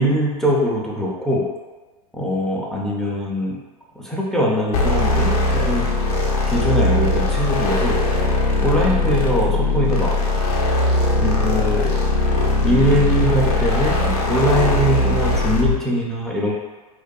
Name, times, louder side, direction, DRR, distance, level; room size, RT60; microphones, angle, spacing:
voice 1, 0.0-1.5 2.1-3.6 4.0-5.9 6.5-8.0 8.6-10.2 11.2-11.9 12.6-16.5, equal, ahead, -4 dB, 0.4 m, -21 dB
sound 1, 4.7-15.8, left 2 dB, 65° left, 0.6 m, -20 dB
2.6 x 2.2 x 2.2 m, 1.3 s
hypercardioid pair, 105°, 21 cm